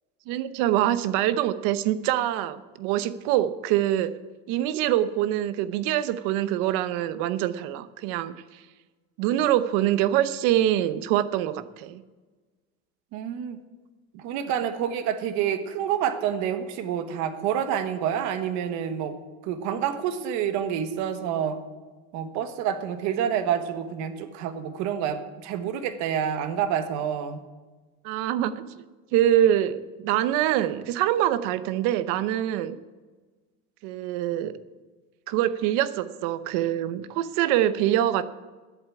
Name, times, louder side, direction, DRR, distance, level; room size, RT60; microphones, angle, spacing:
voice 1, 0.3-4.1 4.5-8.3 9.2-12.0 28.0-28.6 29.1-32.8 33.8-34.5 35.3-38.2, right 12 dB, 80° right, 14 dB, 0.9 m, -24 dB
voice 2, 13.1-13.6 14.1-19.1 19.4-21.6 22.1-27.4, right 9 dB, 60° right, 10 dB, 1.3 m, -28 dB
11.0 x 8.3 x 8.3 m, 1.3 s
cardioid pair, 175°, 31 cm